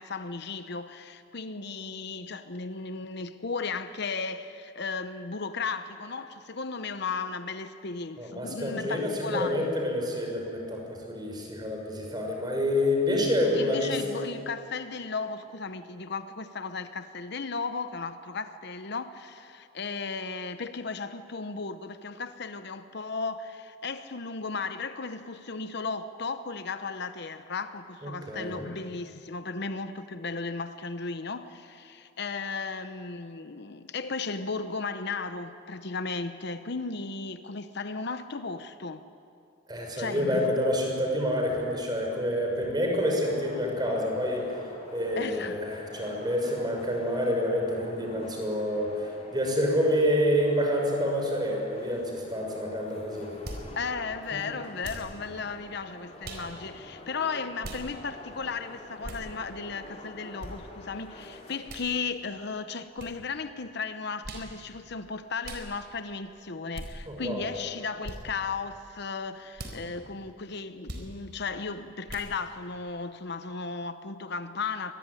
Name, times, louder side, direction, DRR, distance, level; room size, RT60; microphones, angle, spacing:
voice 1, 0.0-9.7 13.5-39.0 40.0-40.5 45.2-45.6 53.8-74.9, left 4 dB, 55° left, 0.9 m, -35 dB
voice 2, 8.2-14.0 28.0-28.6 39.7-44.5 44.9-53.3 54.3-54.4 67.1-67.5, equal, 20° right, 5.8 m, -28 dB
sound 1, 43.0-61.6, left 1 dB, 35° left, 4.0 m, -47 dB
sound 2, 53.4-53.7 54.8-55.1 56.2-56.5 57.6-57.8 59.0-59.3 60.4-60.5 61.7-61.9 63.0-63.1 64.2-64.5 65.4-65.7 66.7-66.9 68.0-68.2 69.5-69.8 70.9-71.1 72.1-72.3, right 1 dB, 55° right, 4.3 m, -39 dB
25.0 x 21.5 x 9.9 m
head